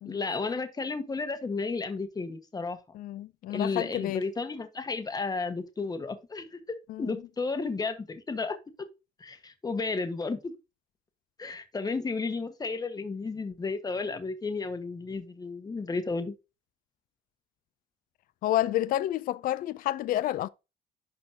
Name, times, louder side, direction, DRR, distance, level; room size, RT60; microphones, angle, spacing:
voice 1, 0.0-2.8 3.5-8.6 9.2-10.5 11.4-16.3, left 4 dB, 20° left, 1.4 m, -33 dB
voice 2, 2.9-4.2 6.9-7.2 18.4-20.5, left 13 dB, 55° left, 0.4 m, -29 dB
11.5 x 4.3 x 2.8 m
cardioid pair, 110°, 17 cm